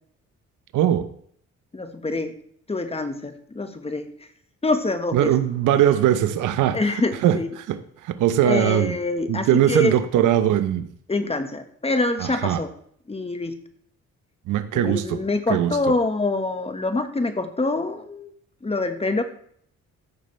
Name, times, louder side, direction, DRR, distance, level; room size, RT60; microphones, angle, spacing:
voice 1, 0.7-1.1 5.1-9.0 9.3-10.9 12.2-12.6 14.5-15.2 15.5-15.8, right 11 dB, 85° right, 0.8 m, -21 dB
voice 2, 1.7-2.4 2.7-4.1 4.6-5.3 6.7-7.5 8.5-9.9 11.1-12.7 13.1-13.5 14.7-18.3 18.6-19.2, left 2 dB, 20° left, 1.3 m, -25 dB
14.5 x 6.7 x 3.3 m
cardioid pair, 90°, 30 cm